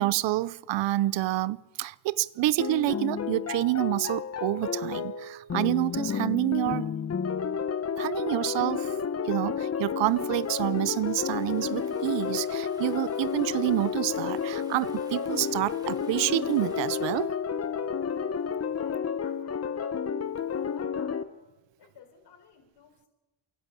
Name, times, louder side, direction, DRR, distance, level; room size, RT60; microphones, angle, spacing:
voice 1, 0.0-6.9 8.0-8.9 9.2-17.3, right 17 dB, 80° right, 0.7 m, -28 dB
sound 1, 2.6-21.2, left 7 dB, 35° left, 1.1 m, -31 dB
Stream / Ocean, 10.0-17.3, right 1 dB, 10° right, 3.1 m, -54 dB
voice 2, 18.7-20.0 20.5-23.1, left 7 dB, 65° left, 5.4 m, -54 dB
28.0 x 11.5 x 8.5 m
cardioid pair, 95°, 43 cm